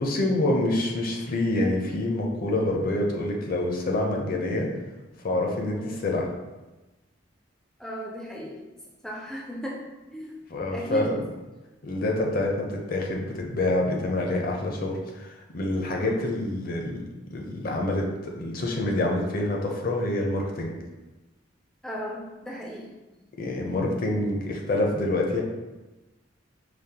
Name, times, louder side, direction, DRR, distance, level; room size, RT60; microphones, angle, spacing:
voice 1, 0.0-4.7 5.2-6.3 10.5-11.2 11.8-20.7 23.4-25.4, left 1 dB, 50° left, 0 dB, 0.6 m, -27 dB
voice 2, 7.8-8.6 9.0-9.8 10.1-10.3 10.7-11.1 16.0-16.3 21.8-22.9, equal, 5° left, -4 dB, 0.3 m, -35 dB
5.0 x 2.0 x 2.8 m, 1.1 s
head